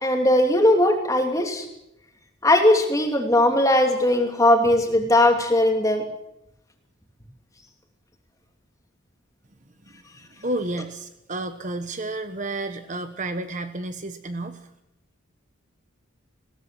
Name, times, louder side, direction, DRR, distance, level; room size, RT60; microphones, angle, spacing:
voice 1, 0.0-1.7 2.4-6.0, left 1 dB, 15° left, 3 dB, 2.9 m, -19 dB
voice 2, 10.4-14.6, right 2 dB, 35° right, 9 dB, 1.1 m, -31 dB
21.0 x 17.0 x 7.7 m, 0.84 s
head